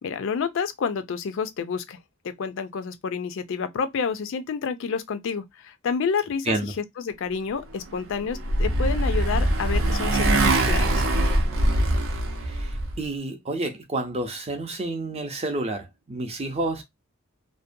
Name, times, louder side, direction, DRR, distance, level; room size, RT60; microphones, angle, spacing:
voice 1, 0.0-2.0 2.2-11.1, left 6 dB, 65° left, 0.4 m, -29 dB
Motorcycle, 7.9-13.0, right 1 dB, 70° right, 0.7 m, -22 dB
voice 2, 12.5-16.8, right 2 dB, 30° right, 0.6 m, -29 dB
2.6 x 2.1 x 2.5 m
head